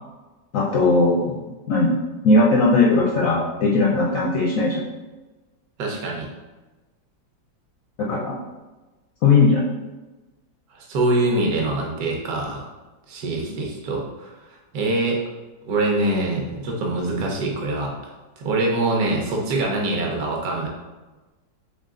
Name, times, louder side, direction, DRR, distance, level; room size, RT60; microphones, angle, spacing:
voice 1, 0.5-1.4 1.7-2.0 2.2-4.8 8.0-8.3 9.2-9.7, left 3 dB, 70° left, -3 dB, 0.8 m, -18 dB
voice 2, 5.8-6.3 10.7-12.6 13.1-14.3 14.7-15.2 15.7-17.9 18.4-20.7, right 2 dB, 60° right, -1 dB, 1.3 m, -24 dB
4.0 x 3.6 x 3.7 m, 1.2 s
omnidirectional pair, 2.0 m